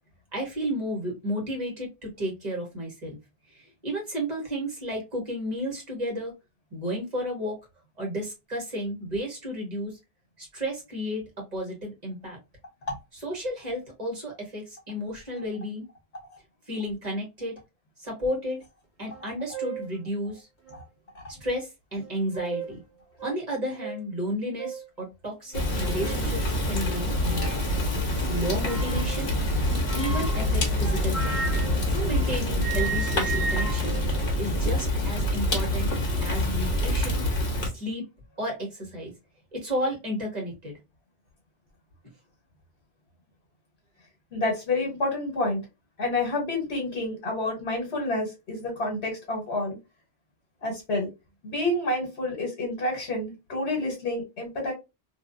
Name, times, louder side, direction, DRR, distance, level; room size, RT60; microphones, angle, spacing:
voice 1, 0.3-3.2 3.5-6.3 6.7-7.6 8.0-10.0 10.4-11.2 11.5-12.4 13.2-15.8 16.7-17.6 18.0-18.6 19.0-20.5 21.4-22.8 23.2-27.7 28.3-29.3 29.6-31.4 31.8-34.0 34.4-35.9 36.2-37.2 37.7-38.0 38.4-39.1 39.5-40.7, equal, 40° right, -1 dB, 1.5 m, -32 dB
sound 1, 19.1-19.2 19.5-19.9 20.6-20.7 22.0-22.8 23.2-23.3 23.8-24.0 24.6-24.9 25.5-26.3 27.3-27.7 28.6-29.2 29.9-32.3 32.6-34.9, right 5 dB, 15° left, 1.2 m, -35 dB
Fire, 25.5-37.7, left 1 dB, 55° left, 1.2 m, -26 dB
voice 2, 44.3-45.6 46.0-49.8 50.6-51.1 51.4-54.7, left 2 dB, 75° left, 1 dB, 1.3 m, -29 dB
2.8 x 2.5 x 2.5 m, 0.24 s
omnidirectional pair, 1.1 m